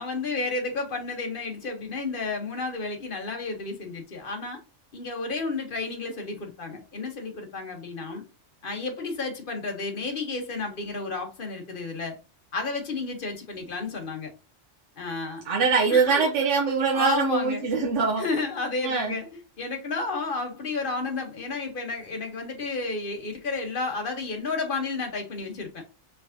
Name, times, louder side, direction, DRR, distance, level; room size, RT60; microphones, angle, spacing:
voice 1, 0.0-4.6 4.9-8.2 8.6-12.2 12.5-14.3 15.0-15.4 15.9-16.3 16.9-17.7 18.2-25.8, left 3 dB, 45° left, 1.2 m, -32 dB
voice 2, 15.5-18.2 18.8-19.1, right 5 dB, 70° right, 1.1 m, -23 dB
4.5 x 3.6 x 2.7 m
omnidirectional pair, 1.3 m